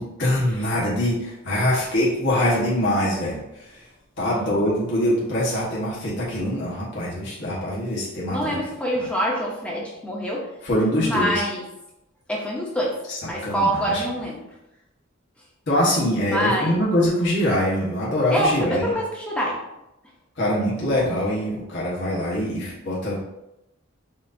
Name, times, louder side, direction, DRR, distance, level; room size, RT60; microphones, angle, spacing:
voice 1, 0.0-3.9 4.2-8.6 10.6-11.4 13.1-14.0 15.7-19.0 20.3-23.2, left 1 dB, 55° left, -7 dB, 1.2 m, -24 dB
voice 2, 8.3-10.5 11.0-11.6 12.3-13.0 13.3-14.4 16.3-16.7 18.3-19.6, equal, 5° left, -3 dB, 0.8 m, -25 dB
6.1 x 2.7 x 2.6 m, 0.89 s
head